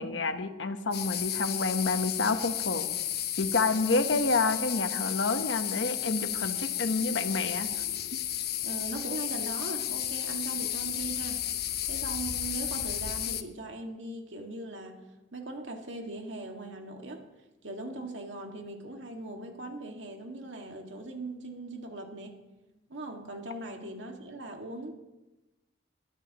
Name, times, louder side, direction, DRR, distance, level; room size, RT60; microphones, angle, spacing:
voice 1, 0.0-2.9 3.4-7.7 8.1-8.2, left 3 dB, 80° left, 8 dB, 1.1 m, -29 dB
sound 1, 0.9-13.4, left 11 dB, 55° left, 0.8 m, -33 dB
voice 2, 8.6-11.4 11.9-15.0 15.3-17.2 17.6-22.4 22.9-24.9, right 2 dB, 85° right, 2 dB, 2.0 m, -40 dB
21.5 x 12.5 x 3.0 m, 1.0 s
head